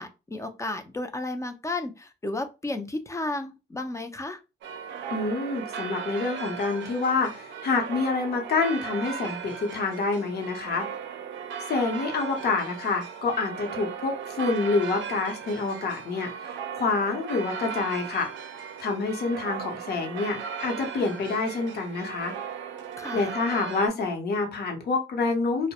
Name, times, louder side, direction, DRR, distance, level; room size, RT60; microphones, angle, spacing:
voice 1, 0.0-4.4 23.0-23.3, left 2 dB, 15° left, 0.4 m, -33 dB
sound 1, 4.6-23.9, right 7 dB, 70° right, 0.5 m, -37 dB
voice 2, 5.1-10.8 11.7-16.3 16.7-18.3 18.8-22.3 23.1-25.7, left 3 dB, 55° left, 0.8 m, -27 dB
2.2 x 2.0 x 2.8 m
cardioid pair, 90°, 20 cm